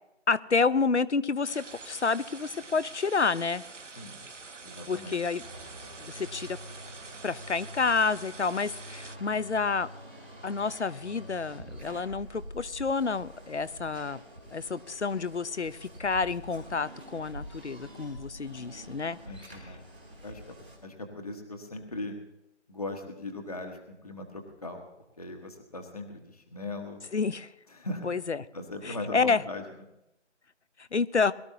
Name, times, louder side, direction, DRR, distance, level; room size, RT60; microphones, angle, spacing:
voice 1, 0.3-3.6 4.9-5.4 6.0-6.6 7.2-9.9 10.4-14.2 14.5-19.2 27.1-27.5 28.0-28.4 28.8-29.4 30.9-31.3, left 4 dB, 70° left, 17 dB, 0.8 m, -29 dB
sound 1, 1.4-9.2, right 4 dB, 80° right, 1.1 m, -46 dB
voice 2, 4.6-5.2 19.3-19.8 20.2-20.4 20.8-22.1 22.7-24.8 25.2-27.0 27.7-28.1 28.5-29.6, left 2 dB, 30° left, 4 dB, 1.4 m, -39 dB
sound 2, 5.4-20.8, equal, 10° right, 1.4 m, -46 dB
22.0 x 13.5 x 2.8 m, 0.88 s
figure-of-eight pair, 165°, 36 cm